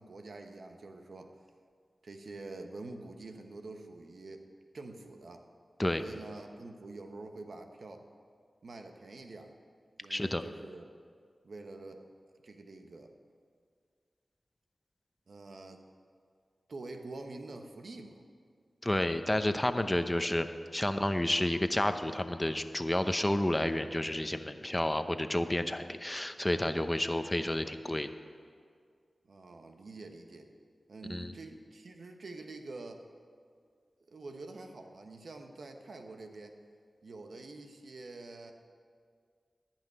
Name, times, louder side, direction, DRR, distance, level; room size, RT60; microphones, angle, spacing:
voice 1, 0.0-1.4 2.0-4.5 4.7-5.4 6.0-8.1 8.6-9.6 10.0-10.9 11.4-12.0 12.4-13.1 15.3-15.8 16.7-18.2 19.8-20.0 29.2-30.5 30.9-33.0 34.1-36.6 37.0-38.5, right 2 dB, 75° right, 5 dB, 1.1 m, -46 dB
voice 2, 10.1-10.4 18.8-20.5 20.7-28.1 31.1-31.3, left 1 dB, 20° left, 9 dB, 0.7 m, -30 dB
14.0 x 5.8 x 9.4 m, 2.1 s
cardioid pair, 45°, 0 cm